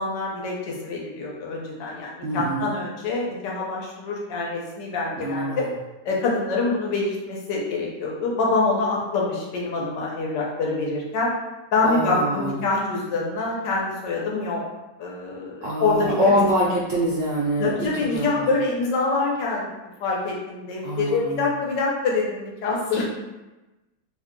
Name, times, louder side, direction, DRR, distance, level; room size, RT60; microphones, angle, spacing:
voice 1, 0.0-5.7 6.0-11.3 11.7-14.6 15.0-16.1 17.6-19.7 20.0-23.0, left 3 dB, 90° left, -3 dB, 1.4 m, -25 dB
voice 2, 2.2-2.7 5.2-5.7 11.8-12.6 15.6-18.5 20.8-21.5, equal, 75° right, -5 dB, 0.7 m, -24 dB
3.2 x 2.2 x 3.7 m, 1.1 s
omnidirectional pair, 1.8 m